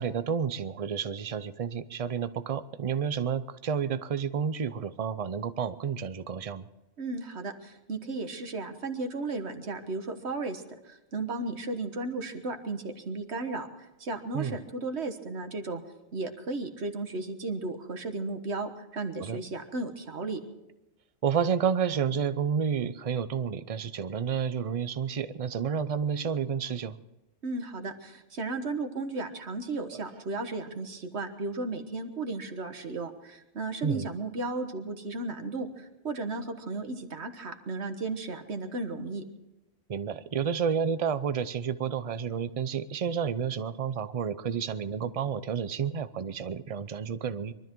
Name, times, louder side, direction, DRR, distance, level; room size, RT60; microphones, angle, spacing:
voice 1, 0.0-6.7 14.3-14.6 19.2-19.4 21.2-27.0 29.9-30.0 33.8-34.1 39.9-47.5, right 7 dB, 40° right, 13 dB, 0.6 m, -30 dB
voice 2, 7.0-13.7 14.0-15.8 16.1-20.4 27.4-39.2, right 3 dB, 60° right, 7 dB, 1.6 m, -35 dB
23.5 x 13.0 x 4.6 m, 0.98 s
omnidirectional pair, 1.3 m